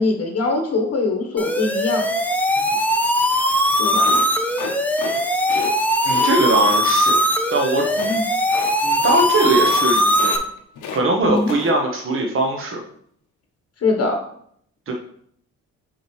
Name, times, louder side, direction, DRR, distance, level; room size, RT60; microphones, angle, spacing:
voice 1, 0.0-2.1 3.8-4.2 8.0-8.2 11.3-11.5 13.8-14.2, left 3 dB, 55° left, 2 dB, 1.1 m, -22 dB
sound 1, 1.4-10.4, equal, 5° left, 0.8 m, -20 dB
sound 2, 4.0-5.2 5.4-5.7 6.1-6.3 7.9-8.2 8.5-8.7 9.0-9.3 9.5-9.9 10.1-11.0 11.3-11.7, left 5 dB, 85° left, 1.0 m, -32 dB
voice 2, 6.0-7.2 7.5-7.8 8.8-10.3 10.9-12.8 14.9-15.0, right 2 dB, 45° right, 1 dB, 1.2 m, -20 dB
6.3 x 4.7 x 3.2 m, 0.65 s
cardioid pair, 90°, 30 cm